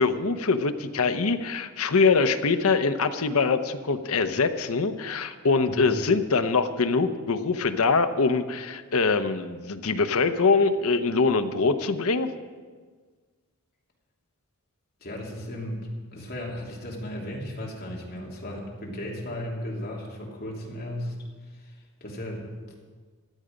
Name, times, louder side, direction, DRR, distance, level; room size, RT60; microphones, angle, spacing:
voice 1, 0.0-12.3, left 4 dB, 75° left, 9 dB, 0.8 m, -23 dB
voice 2, 15.0-15.8 16.1-21.1 21.5-21.8 22.0-22.5, left 1 dB, 45° left, -2 dB, 2.9 m, -35 dB
15.5 x 11.0 x 5.2 m, 1.5 s
head